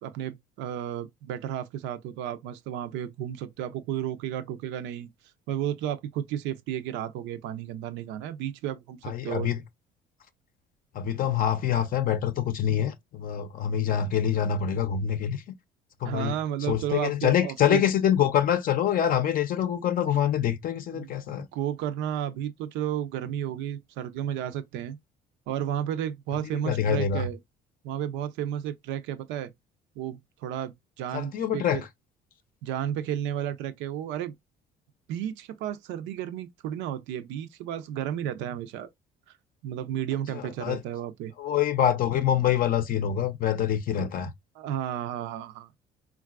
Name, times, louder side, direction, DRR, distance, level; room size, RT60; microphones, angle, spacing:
voice 1, 0.0-5.1 5.5-9.5 16.0-17.8 20.9-25.0 25.5-27.4 27.8-29.5 30.0-31.8 32.6-34.3 35.1-38.9 39.6-41.3 44.6-45.7, right 10 dB, 80° right, 0.5 m, -32 dB
voice 2, 9.0-9.6 10.9-15.4 16.0-16.3 16.6-21.5 26.4-27.3 31.1-31.9 40.3-40.8 41.4-44.3, left 9 dB, 50° left, 0.5 m, -25 dB
3.8 x 2.3 x 2.3 m
cardioid pair, 95°, 19 cm